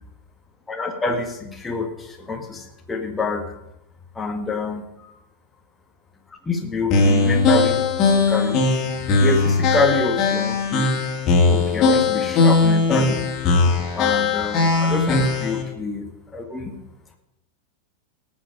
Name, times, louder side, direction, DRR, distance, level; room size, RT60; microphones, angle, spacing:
voice 1, 0.7-3.5 4.2-5.1 6.5-8.6 9.2-10.9 11.5-13.2 14.0-16.8, left 3 dB, 15° left, 3 dB, 1.8 m, -27 dB
sound 1, 6.9-15.6, left 3 dB, 35° left, 2.8 m, -19 dB
18.0 x 7.6 x 5.3 m, 0.83 s
figure-of-eight pair, 90°, 0 cm